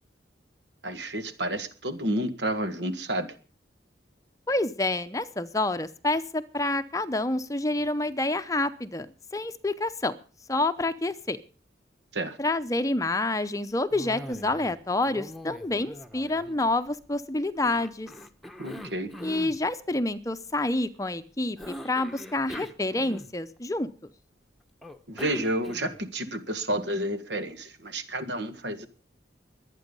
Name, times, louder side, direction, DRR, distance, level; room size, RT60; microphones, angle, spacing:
voice 1, 0.8-3.3 12.1-12.4 18.6-19.1 25.1-28.9, right 1 dB, 70° right, 9 dB, 1.9 m, -30 dB
voice 2, 4.5-9.1 9.3-10.1 10.5-11.4 12.4-18.1 19.2-23.9, left 2 dB, 20° left, 11 dB, 0.7 m, -28 dB
Cough, 13.9-14.8 15.0-17.1 17.6-19.6 21.6-23.6 24.8-26.1, equal, ahead, 1.0 m, -42 dB
23.0 x 9.1 x 5.4 m, 0.39 s
head